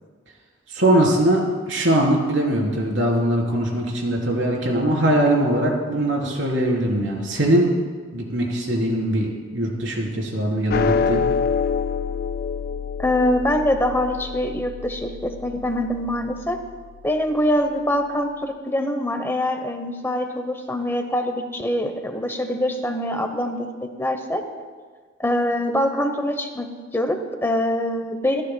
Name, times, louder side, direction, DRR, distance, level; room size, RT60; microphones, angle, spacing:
voice 1, 0.7-7.7 8.1-11.3, right 1 dB, 85° right, -1 dB, 3.7 m, -21 dB
sound 1, 10.7-17.2, left 6 dB, 50° left, 0.3 m, -27 dB
voice 2, 13.0-16.6 17.0-24.4 25.2-26.7 26.9-28.4, left 1 dB, 15° left, 6 dB, 0.9 m, -24 dB
28.0 x 13.0 x 2.3 m, 1.5 s
head